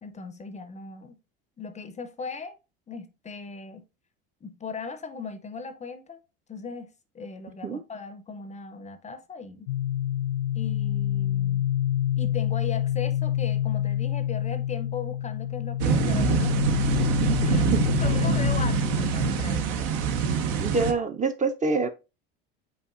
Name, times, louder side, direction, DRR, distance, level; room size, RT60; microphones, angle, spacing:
voice 1, 0.0-1.2 1.6-2.6 2.9-3.9 4.4-6.2 6.5-9.7 10.5-11.7 12.2-16.8 17.4-17.6 18.0-19.8, left 5 dB, 25° left, 0.5 m, -38 dB
sound 1, 9.7-19.5, left 11 dB, 80° left, 0.4 m, -27 dB
sound 2, 15.8-20.9, right 7 dB, 70° right, 0.7 m, -25 dB
voice 2, 20.6-21.9, right 4 dB, 25° right, 0.5 m, -25 dB
5.4 x 4.0 x 2.4 m
hypercardioid pair, 80°, 30 cm